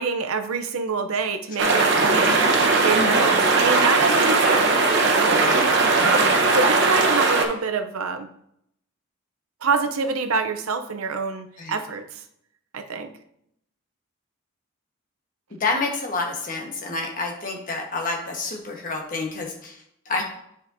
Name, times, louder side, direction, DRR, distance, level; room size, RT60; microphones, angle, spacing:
voice 1, 0.0-2.4 2.7-5.4 6.0-8.3 9.6-12.2 12.7-13.1, right 4 dB, 85° right, 7 dB, 0.7 m, -26 dB
sound 1, 1.6-7.5, right 3 dB, 55° right, 1.0 m, -19 dB
voice 2, 2.9-3.3 5.3-5.6 6.0-6.3 11.6-11.7 15.5-20.2, left 3 dB, 40° left, 1 dB, 1.3 m, -29 dB
9.5 x 5.0 x 2.7 m, 0.73 s
head